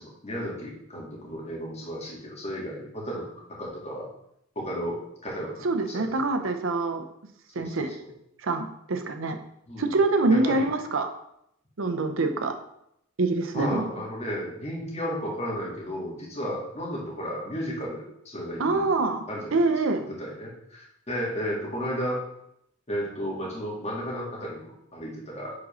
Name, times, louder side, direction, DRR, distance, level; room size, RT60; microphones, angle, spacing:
voice 1, 0.0-3.3 3.6-4.1 4.6-6.5 7.6-8.1 9.7-9.9 10.3-10.7 13.5-18.8 19.3-22.2 22.9-25.5, equal, 35° left, -3 dB, 2.0 m, -34 dB
voice 2, 5.6-7.0 7.5-8.0 8.4-9.4 9.8-11.1 11.8-12.6 13.2-13.9 18.6-19.3 19.5-20.1, right 3 dB, 75° right, 7 dB, 0.7 m, -25 dB
5.2 x 4.2 x 5.5 m, 0.77 s
head